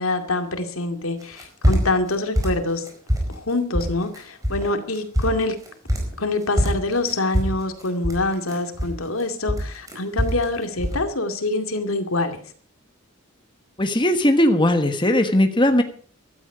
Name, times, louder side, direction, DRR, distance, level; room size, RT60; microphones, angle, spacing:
voice 1, 0.0-2.9 3.3-5.6 6.2-12.4, left 2 dB, 90° left, 7 dB, 2.4 m, -25 dB
sound 1, 1.2-2.1 2.4-3.4 3.7-4.2 4.4-4.7 5.0-6.2 6.6-9.2 9.5-10.5 10.8-11.0, equal, 15° right, 4.6 m, -23 dB
voice 2, 13.8-15.8, left 1 dB, 25° left, 7 dB, 1.4 m, -18 dB
15.5 x 13.0 x 5.0 m, 0.44 s
head